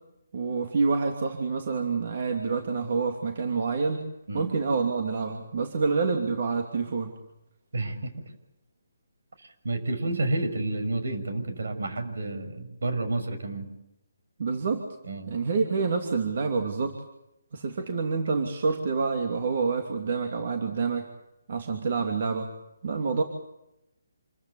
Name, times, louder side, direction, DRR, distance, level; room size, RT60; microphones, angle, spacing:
voice 1, 0.3-4.0 4.3-7.1 14.4-14.9 15.3-17.0 17.5-21.1 21.5-22.5 22.8-23.2, right 4 dB, 50° right, 4 dB, 2.8 m, -27 dB
voice 2, 7.7-8.3 9.4-13.7 15.0-15.3, right 2 dB, 75° right, 8 dB, 6.4 m, -30 dB
27.5 x 15.0 x 8.5 m, 0.87 s
hypercardioid pair, 165°, 0 cm